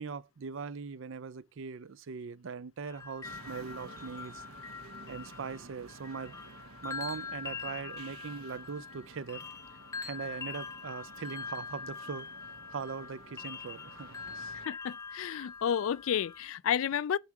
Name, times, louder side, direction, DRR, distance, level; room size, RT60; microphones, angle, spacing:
voice 1, 0.0-4.4 5.1-6.4 6.8-9.5 10.0-12.3 12.7-14.5, right 5 dB, 60° right, 0.4 m, -41 dB
sound 1, 2.9-16.5, left 5 dB, 15° left, 0.5 m, -44 dB
sound 2, 3.2-14.7, right 3 dB, 85° right, 1.2 m, -53 dB
voice 2, 14.6-17.2, left 9 dB, 70° left, 0.3 m, -31 dB
7.1 x 4.6 x 6.0 m
head